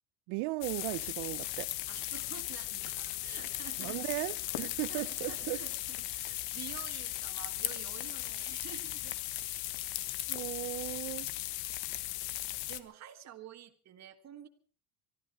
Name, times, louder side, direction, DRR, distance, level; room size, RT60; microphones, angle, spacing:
voice 1, 0.3-1.7 3.8-5.6 10.3-11.3, right 21 dB, 80° right, 18 dB, 0.9 m, -36 dB
sound 1, 0.6-12.8, left 16 dB, 85° left, 1.4 m, -37 dB
Wind instrument woodwind instrument, 1.7-7.4, left 4 dB, 40° left, 7.0 m, -64 dB
voice 2, 1.9-4.2 4.9-9.2 11.8-12.1 12.7-14.5, right 10 dB, 40° right, 4 dB, 1.9 m, -49 dB
24.5 x 13.5 x 4.3 m, 0.43 s
cardioid pair, 155°, 42 cm